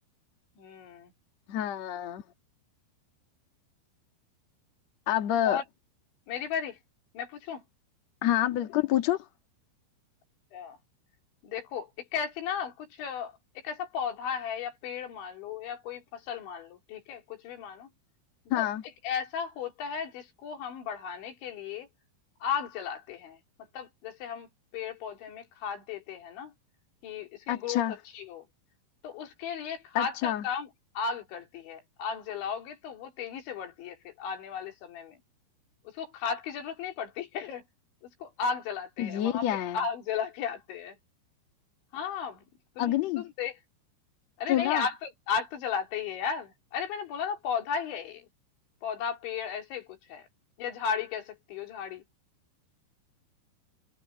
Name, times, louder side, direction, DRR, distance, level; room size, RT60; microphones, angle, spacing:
voice 1, 0.6-1.1 5.4-5.6 6.3-6.8 7.1-7.6 10.5-10.8 11.4-17.9 18.5-18.7 19.0-21.9 22.4-23.4 23.7-26.5 27.0-27.8 28.1-28.5 29.0-30.7 31.0-35.2 35.9-37.6 38.2-41.0 41.9-42.4 42.8-43.6 44.4-48.3 48.8-50.3 50.6-52.0, left 6 dB, 85° left, 5.6 m, -35 dB
voice 2, 1.5-2.2 5.1-5.6 8.2-9.2 18.5-18.8 27.5-28.0 29.9-30.4 39.0-39.8 42.8-43.2 44.5-44.9, left 12 dB, 50° left, 2.4 m, -27 dB
omnidirectional pair, 5.2 m